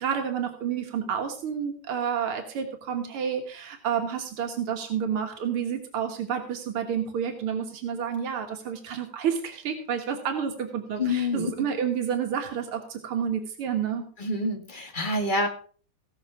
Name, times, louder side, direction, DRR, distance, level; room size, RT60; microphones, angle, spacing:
voice 1, 0.0-14.1, right 8 dB, 90° right, 5 dB, 2.2 m, -30 dB
voice 2, 11.0-11.7 14.2-15.5, left 2 dB, 25° left, 3 dB, 2.1 m, -27 dB
17.0 x 6.5 x 5.8 m, 0.43 s
omnidirectional pair, 2.3 m